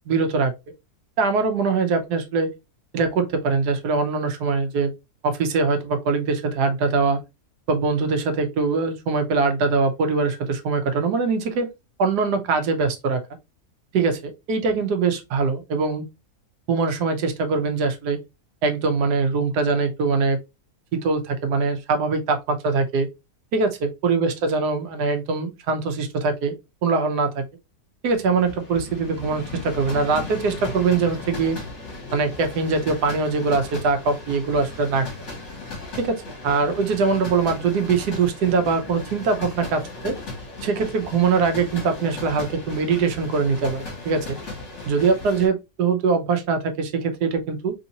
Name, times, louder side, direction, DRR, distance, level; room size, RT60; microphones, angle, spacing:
voice 1, 0.1-0.5 1.2-2.5 2.9-4.9 5.2-7.2 7.7-11.7 12.0-13.2 13.9-16.1 16.7-18.2 18.6-20.4 20.9-23.1 23.5-26.5 26.8-27.4 28.0-31.6 32.1-35.1 36.0-40.1 40.6-44.4 44.9-47.7, right 4 dB, 85° right, 1.3 m, -22 dB
sound 1, 28.1-45.5, left 3 dB, 50° left, 1.7 m, -36 dB
3.5 x 2.7 x 2.7 m
omnidirectional pair, 1.7 m